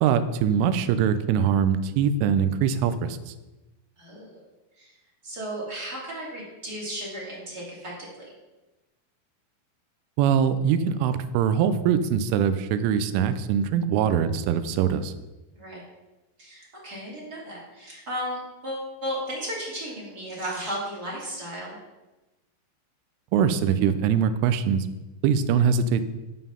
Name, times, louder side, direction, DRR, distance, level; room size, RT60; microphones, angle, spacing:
voice 1, 0.0-3.3 10.2-15.1 23.3-24.9 25.2-26.0, right 7 dB, 85° right, 11 dB, 3.2 m, -23 dB
voice 2, 5.2-8.3 15.6-15.8 16.4-21.8, equal, 25° right, -5 dB, 2.2 m, -34 dB
11.5 x 5.6 x 5.6 m, 1.1 s
omnidirectional pair, 5.5 m